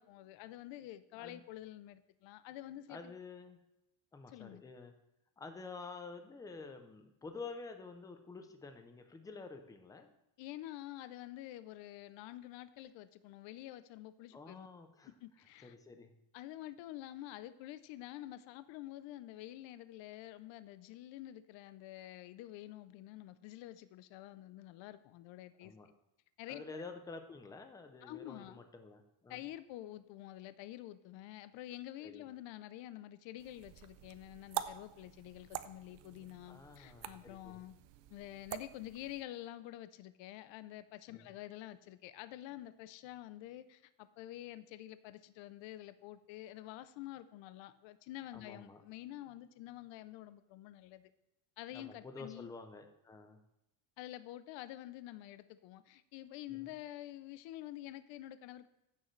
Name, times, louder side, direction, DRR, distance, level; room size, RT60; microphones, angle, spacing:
voice 1, 0.0-3.1 4.3-4.6 10.4-14.7 15.2-15.7 16.3-25.7 26.4-26.8 28.0-28.6 29.3-37.7 38.1-51.1 51.6-52.5 54.0-58.7, left 14 dB, 65° left, 13 dB, 0.6 m, -48 dB
voice 2, 2.9-3.6 4.1-4.9 5.4-10.1 14.3-15.1 15.6-16.2 25.6-25.9 26.5-29.4 32.0-32.3 36.5-37.6 41.1-41.3 48.3-48.8 51.7-53.4 56.5-56.7, left 4 dB, 10° left, 7 dB, 0.3 m, -49 dB
sound 1, 33.4-39.2, right 13 dB, 60° right, 0.6 m, -46 dB
15.0 x 6.5 x 3.1 m, 0.87 s
cardioid pair, 180°, 48 cm